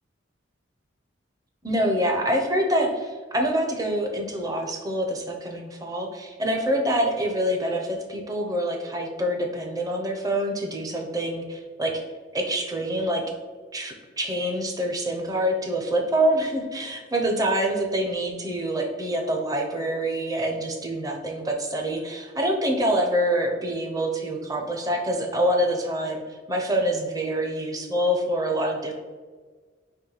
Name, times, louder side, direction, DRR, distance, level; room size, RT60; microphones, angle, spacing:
voice 1, 1.6-12.0 12.3-13.2 13.7-28.9, right 1 dB, 20° right, 2 dB, 0.6 m, -26 dB
4.4 x 3.0 x 4.0 m, 1.5 s
head